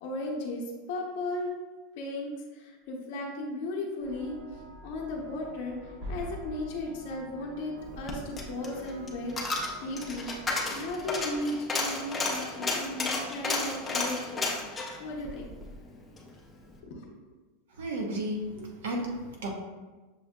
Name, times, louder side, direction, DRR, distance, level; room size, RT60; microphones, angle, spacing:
voice 1, 0.0-1.5 1.9-4.4 4.8-5.8 6.1-10.3 10.7-14.5 15.0-15.5 16.8-17.1, left 2 dB, 45° left, -2 dB, 0.7 m, -36 dB
sound 1, 4.0-11.4, right 1 dB, 40° right, 0.7 m, -46 dB
Coin (dropping), 7.8-16.3 16.6-16.7, left 3 dB, 10° left, 0.4 m, -33 dB
voice 2, 17.8-19.5, right 1 dB, 85° right, 0 dB, 0.9 m, -33 dB
6.3 x 2.7 x 2.3 m, 1.3 s
supercardioid pair, 180°, 0 cm